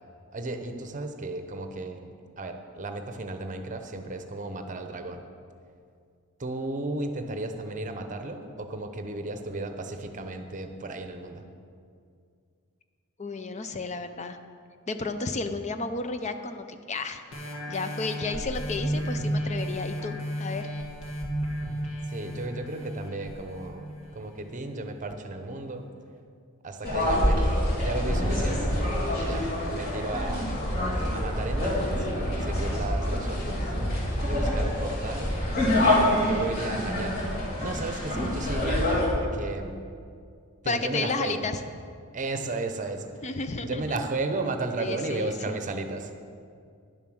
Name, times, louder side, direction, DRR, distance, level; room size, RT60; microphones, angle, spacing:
voice 1, 0.3-5.2 6.4-11.4 22.1-25.9 26.6-28.7 29.1-30.5 31.1-33.7 34.2-35.4 35.7-37.2 37.6-39.8 40.6-41.4 42.1-46.1, right 2 dB, 35° right, 7 dB, 0.7 m, -34 dB
voice 2, 13.2-14.4 14.9-17.2 17.7-20.7 40.7-41.6 43.2-43.8 44.8-45.5, left 3 dB, 30° left, 9 dB, 0.5 m, -32 dB
sound 1, 17.3-24.5 25.0-25.1, equal, 65° left, 1.9 m, -33 dB
sound 2, 26.8-39.1, left 1 dB, 45° left, 2.9 m, -26 dB
10.5 x 7.2 x 6.3 m, 2.3 s
head